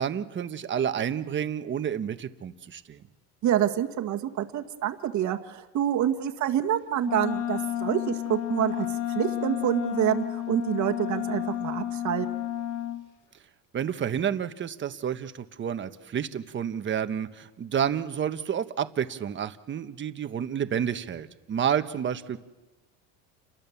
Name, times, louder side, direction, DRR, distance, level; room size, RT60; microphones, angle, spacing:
voice 1, 0.0-3.0 13.7-22.4, right 8 dB, 30° right, 10 dB, 1.3 m, -30 dB
voice 2, 3.4-12.3, right 11 dB, 50° right, 6 dB, 1.7 m, -27 dB
Wind instrument woodwind instrument, 7.0-13.1, left 11 dB, 55° left, 1.5 m, -31 dB
29.5 x 22.0 x 7.2 m, 1.2 s
supercardioid pair, 125°, 37 cm